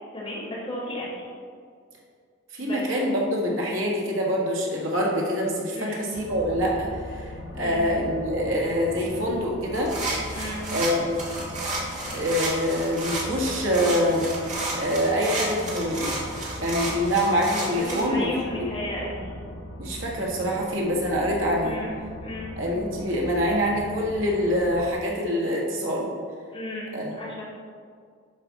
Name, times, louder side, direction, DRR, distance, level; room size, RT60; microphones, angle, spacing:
voice 1, 0.1-1.2 2.6-3.1 5.7-6.0 7.6-7.8 10.3-10.7 17.7-19.3 21.6-21.9 22.2-22.5 26.5-27.4, left 1 dB, 25° left, -8 dB, 2.4 m, -34 dB
voice 2, 2.5-9.9 10.7-11.2 12.1-14.3 14.8-16.2 16.6-18.3 19.8-21.8 22.6-26.1 26.9-27.2, equal, 75° right, -2 dB, 1.7 m, -25 dB
sound 1, 6.1-24.9, left 1 dB, 70° left, 0.8 m, -39 dB
sound 2, 9.7-18.0, right 2 dB, 35° right, 1.8 m, -32 dB
11.5 x 5.0 x 4.1 m, 2.1 s
head